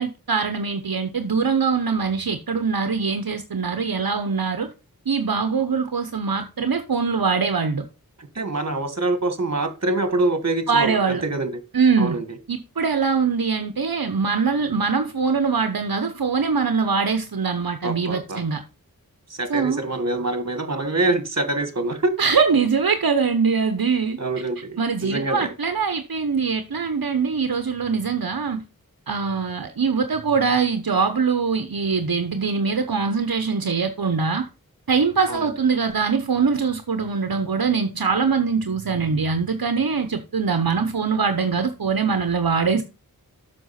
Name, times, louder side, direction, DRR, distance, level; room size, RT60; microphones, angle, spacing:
voice 1, 0.0-4.7 5.1-7.9 10.7-11.2 11.7-12.2 12.5-18.6 19.5-19.8 22.2-24.2 24.8-28.6 29.1-34.5 34.9-42.8, right 5 dB, 75° right, 0.9 m, -22 dB
voice 2, 8.2-11.5 12.0-12.4 17.8-18.4 19.3-22.1 24.2-25.5 35.3-35.5, right 2 dB, 45° right, 1.7 m, -25 dB
7.7 x 6.1 x 5.7 m
wide cardioid pair, 55°, 36 cm